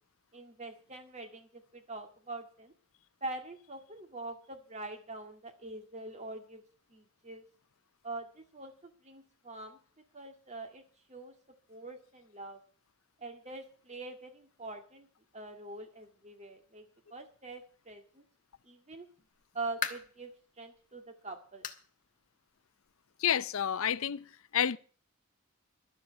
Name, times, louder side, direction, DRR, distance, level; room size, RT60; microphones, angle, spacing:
voice 1, 0.3-2.7 3.2-6.6 6.9-7.5 8.0-9.8 10.1-11.4 11.7-12.6 13.2-15.1 15.3-18.2 18.6-19.1 19.5-20.3 20.6-21.7, right 2 dB, 30° right, 2.0 m, -44 dB
sound 1, 19.2-20.2 20.7-20.9 21.6-21.9 22.2-22.3 22.8-22.9 24.0-24.1, left 7 dB, 35° left, 1.2 m, -39 dB
voice 2, 23.2-24.8, left 9 dB, 65° left, 0.5 m, -30 dB
12.0 x 7.6 x 8.7 m
head